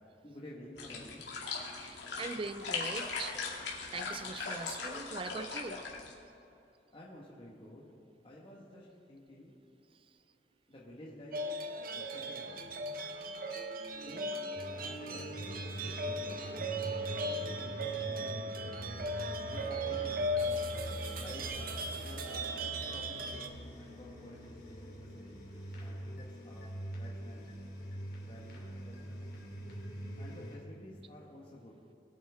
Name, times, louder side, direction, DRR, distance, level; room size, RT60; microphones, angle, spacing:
voice 1, 0.2-1.3 6.9-7.9 8.2-9.5 10.7-11.4 11.9-12.7 14.0-14.4 14.7-16.8 17.2-18.6 19.4-20.3 21.2-25.4 25.8-26.7 27.0-27.5 28.2-29.3 30.2-31.8, left 1 dB, 30° left, -5 dB, 1.4 m, -52 dB
sound 1, 0.8-6.1, left 4 dB, 80° left, 2.4 m, -39 dB
voice 2, 1.8-3.3 3.9-5.8, right 3 dB, 30° right, 11 dB, 0.5 m, -41 dB
sound 2, 11.3-23.5, right 1 dB, 55° right, 0.9 m, -37 dB
sound 3, 14.6-30.6, equal, 60° left, 2.9 m, -44 dB
21.0 x 8.7 x 3.6 m, 2.7 s
head